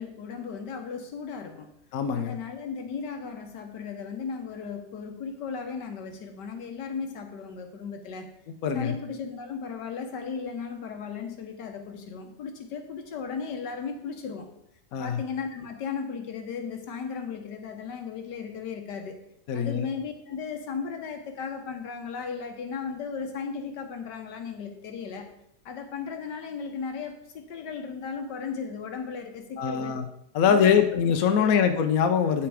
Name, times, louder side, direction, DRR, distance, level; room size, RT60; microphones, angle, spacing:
voice 1, 0.0-1.7 2.1-8.3 8.7-14.5 15.0-19.2 19.5-25.3 25.6-29.9 30.4-30.7 31.3-31.6, left 6 dB, 80° left, 6 dB, 1.7 m, -36 dB
voice 2, 1.9-2.4 8.6-8.9 14.9-15.2 19.5-19.9 29.6-30.1 30.3-32.5, left 7 dB, 65° left, 7 dB, 1.1 m, -23 dB
8.9 x 5.8 x 4.9 m, 0.76 s
omnidirectional pair, 1.8 m